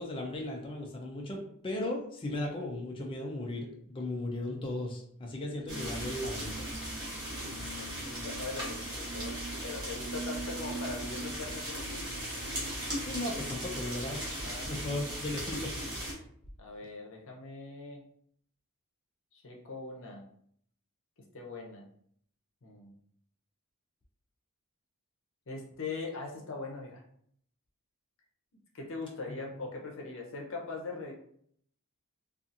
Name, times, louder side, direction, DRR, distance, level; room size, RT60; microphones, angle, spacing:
voice 1, 0.0-6.6 13.0-14.2 14.7-15.8 29.3-29.4, left 1 dB, 25° left, 0 dB, 0.4 m, -36 dB
sound 1, 5.7-16.1, right 1 dB, 20° right, 0.9 m, -37 dB
voice 2, 7.2-9.4 9.6-12.0 14.4-14.7 16.6-18.0 19.3-20.3 21.3-21.9 22.6-22.9 25.5-27.0 28.7-31.1, left 3 dB, 60° left, 0 dB, 0.7 m, -41 dB
2.6 x 2.4 x 2.5 m, 0.65 s
head